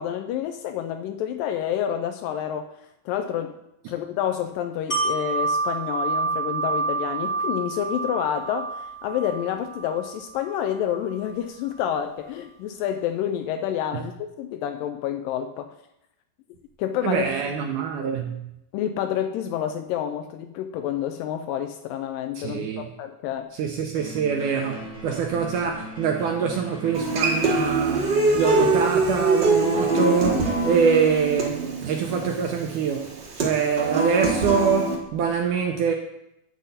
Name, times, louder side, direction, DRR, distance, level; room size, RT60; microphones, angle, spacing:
voice 1, 0.0-2.7 3.1-3.6 3.9-15.7 16.8-17.2 18.7-23.5, left 10 dB, 80° left, 2.0 m, -28 dB
Wind chime, 4.9-10.7 11.1-11.2, right 4 dB, 30° left, 1.2 m, -28 dB
voice 2, 17.0-18.5 22.4-22.9 23.5-35.9, right 6 dB, 80° right, 1.9 m, -25 dB
sound 1, 23.9-31.1, equal, 50° left, 1.3 m, -38 dB
Human voice / Acoustic guitar, 26.9-35.0, right 3 dB, 65° right, 1.1 m, -23 dB
9.8 x 7.8 x 4.1 m
omnidirectional pair, 4.3 m